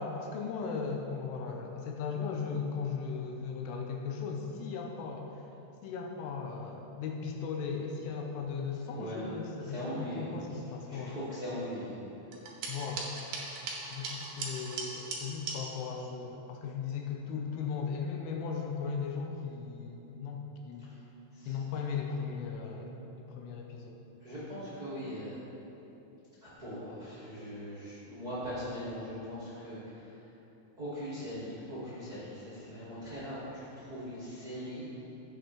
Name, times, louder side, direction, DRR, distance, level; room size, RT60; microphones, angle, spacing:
voice 1, 0.0-5.4 5.8-11.2 12.7-13.1 13.9-20.9 21.5-24.0, left 5 dB, 85° left, 1 dB, 3.2 m, -37 dB
voice 2, 8.9-9.3 9.6-10.3 10.9-11.9 21.3-21.6 24.2-25.4 26.4-30.3 30.8-35.1, equal, 30° right, -11 dB, 1.7 m, -40 dB
sound 1, 12.3-15.6, right 3 dB, 70° right, 2.3 m, -39 dB
16.0 x 6.8 x 3.2 m, 3.0 s
omnidirectional pair, 5.7 m